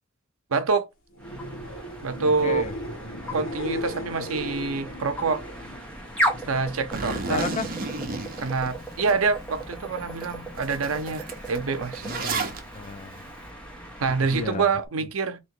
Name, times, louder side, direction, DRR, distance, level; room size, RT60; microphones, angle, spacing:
voice 1, 0.5-0.9 2.0-2.7 3.3-5.4 6.5-7.5 8.4-12.1 14.0-15.4, right 4 dB, 85° right, 0.7 m, -26 dB
sound 1, 1.1-6.9 7.2-7.8 14.8-14.9, equal, 75° left, 1.1 m, -37 dB
sound 2, 1.2-14.6, equal, 5° left, 1.0 m, -36 dB
voice 2, 2.3-2.7 3.2-3.4 6.3-6.6 7.3-7.7 12.1-13.3 14.3-14.7, left 4 dB, 35° left, 0.4 m, -34 dB
Zipper (clothing), 6.9-9.1 9.6-9.7 10.2-10.3 10.6-12.6, right 3 dB, 45° right, 0.8 m, -32 dB
3.1 x 2.8 x 4.4 m
head